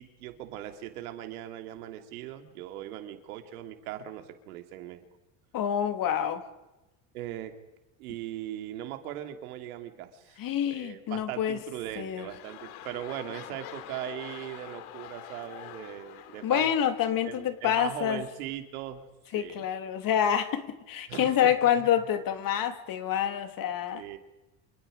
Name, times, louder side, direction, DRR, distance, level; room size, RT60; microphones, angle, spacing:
voice 1, 0.0-5.0 7.1-7.5 8.0-16.7 17.2-19.0 19.3-19.7 21.1-21.9 23.9-24.2, right 12 dB, 85° right, 6 dB, 2.9 m, -39 dB
voice 2, 5.5-6.4 10.4-11.6 12.0-12.3 16.4-18.2 19.3-24.0, left 9 dB, 50° left, 8 dB, 2.9 m, -27 dB
sound 1, 11.7-18.1 18.8-18.9, left 11 dB, 85° left, 2.6 m, -46 dB
29.5 x 27.0 x 5.1 m, 1.0 s
supercardioid pair, 105°, 43 cm